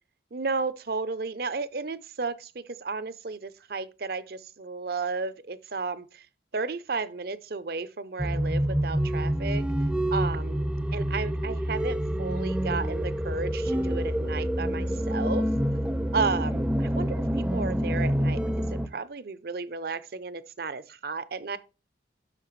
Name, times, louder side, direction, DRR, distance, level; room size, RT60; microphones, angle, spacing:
voice 1, 0.3-6.2 6.5-9.6 10.1-15.5 16.1-18.4 18.7-21.6, right 4 dB, 55° right, 0.6 m, -33 dB
sound 1, 8.2-18.9, equal, 5° right, 0.4 m, -27 dB
11.0 x 6.4 x 3.1 m
head